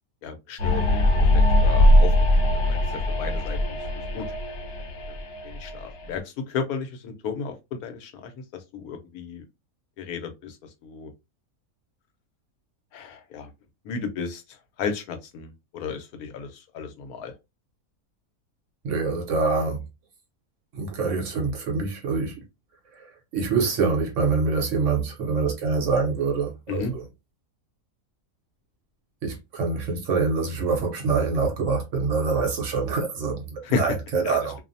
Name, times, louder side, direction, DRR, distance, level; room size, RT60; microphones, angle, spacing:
voice 1, 0.2-2.1 2.7-3.8 4.1-4.3 5.4-8.3 8.7-9.4 10.0-10.6 10.8-11.1 12.9-13.5 13.8-17.3 26.7-26.9 33.6-33.8 34.2-34.4, left 5 dB, 85° left, 1.1 m, -33 dB
sound 1, 0.6-6.0, left 1 dB, 70° left, 1.1 m, -21 dB
voice 2, 18.8-19.8 20.7-22.4 23.0-23.1 23.3-27.0 29.2-34.6, right 4 dB, 60° right, 1.0 m, -25 dB
2.7 x 2.0 x 2.5 m
omnidirectional pair, 1.5 m